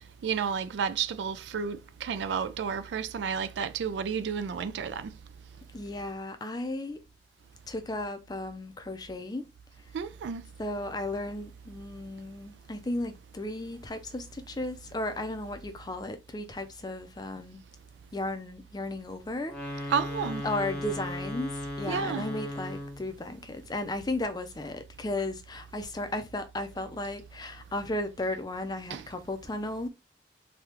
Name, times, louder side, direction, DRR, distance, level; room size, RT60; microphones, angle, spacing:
voice 1, 0.2-5.1 9.9-10.4 19.9-20.4 21.9-22.3 28.9-29.0, right 6 dB, 80° right, 0.3 m, -31 dB
voice 2, 5.7-7.0 7.7-9.5 10.6-17.6 18.1-19.9 20.4-21.5 21.8-29.9, left 2 dB, 25° left, 0.5 m, -35 dB
sound 1, 19.4-23.1, left 1 dB, 5° left, 0.8 m, -36 dB
3.3 x 2.3 x 2.9 m
head